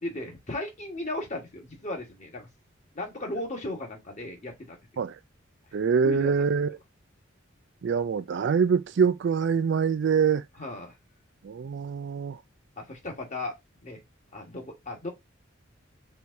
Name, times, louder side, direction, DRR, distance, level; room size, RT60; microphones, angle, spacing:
voice 1, 0.0-2.5 2.9-4.8 6.0-6.3 10.6-11.0 12.8-13.6 13.8-14.0 14.3-15.1, left 2 dB, 35° left, 1.4 m, -36 dB
voice 2, 5.7-6.7 7.8-10.4 11.4-12.4, right 6 dB, 60° right, 0.4 m, -24 dB
4.4 x 3.5 x 2.6 m
head